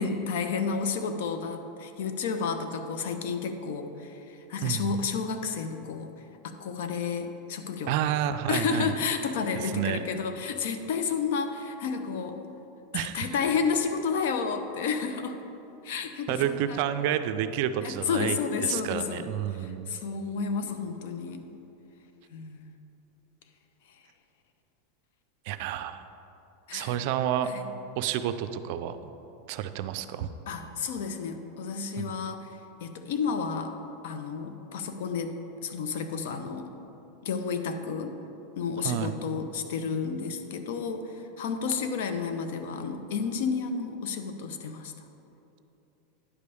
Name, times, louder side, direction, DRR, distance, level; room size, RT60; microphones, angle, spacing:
voice 1, 0.0-6.1 6.4-7.9 8.5-12.4 12.9-15.4 15.8-16.8 17.8-19.2 19.6-21.4 22.3-22.7 26.7-27.0 27.4-27.7 30.5-32.5 32.8-33.7 34.0-36.7 37.2-38.1 38.6-44.9, left 5 dB, 70° left, 8 dB, 0.6 m, -31 dB
voice 2, 4.6-4.9 7.9-8.9 9.5-10.0 12.9-13.3 16.3-19.9 25.5-26.0 26.7-27.5 28.0-29.0 29.5-30.3 38.8-39.2, right 10 dB, 60° right, 10 dB, 0.4 m, -30 dB
9.8 x 3.3 x 6.9 m, 2.9 s
supercardioid pair, 135°, 0 cm